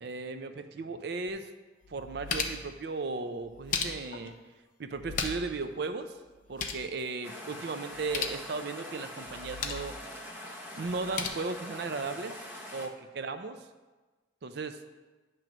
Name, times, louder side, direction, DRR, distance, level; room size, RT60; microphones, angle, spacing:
voice 1, 0.0-1.5 1.9-4.3 4.8-6.1 6.5-10.0 10.7-12.4 12.7-13.7 14.4-14.8, right 3 dB, 55° right, 9 dB, 0.5 m, -36 dB
sound 1, 1.3-1.4 1.8-2.7 3.4-4.3 4.9-5.6 5.9-6.0 6.3-6.9 7.9-8.4 9.3-9.9 10.9-11.3, left 5 dB, 40° left, 0.5 m, -35 dB
sound 2, 7.2-12.9, left 1 dB, 10° right, 0.7 m, -43 dB
9.1 x 3.1 x 5.9 m, 1.2 s
head